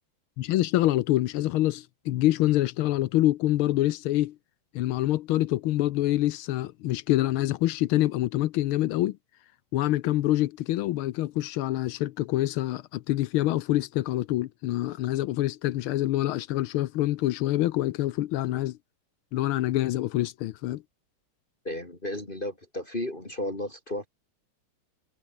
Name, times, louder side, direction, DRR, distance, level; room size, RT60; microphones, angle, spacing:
voice 1, 0.4-4.4 4.7-9.2 9.7-18.8 19.3-20.8, left 15 dB, 80° left, 1.5 m, -26 dB
voice 2, 21.6-24.1, left 1 dB, 20° left, 3.2 m, -33 dB
omnidirectional pair, 2.4 m